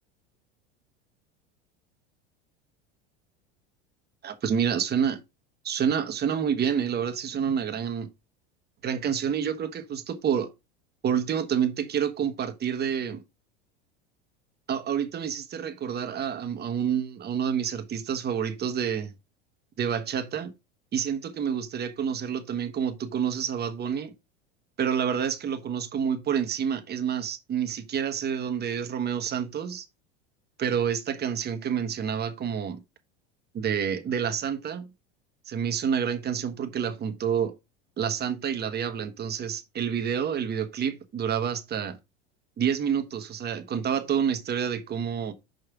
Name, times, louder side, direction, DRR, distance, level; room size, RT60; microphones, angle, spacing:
voice 1, 4.2-5.2 5.6-8.1 8.8-10.5 11.0-13.2 14.7-19.1 19.8-20.5 20.9-24.1 24.8-29.9 30.6-32.8 33.5-34.9 35.5-37.5 38.0-42.0 42.6-45.3, right 8 dB, 30° right, 1.1 m, -28 dB
5.5 x 5.3 x 4.7 m
hypercardioid pair, 95°, 32 cm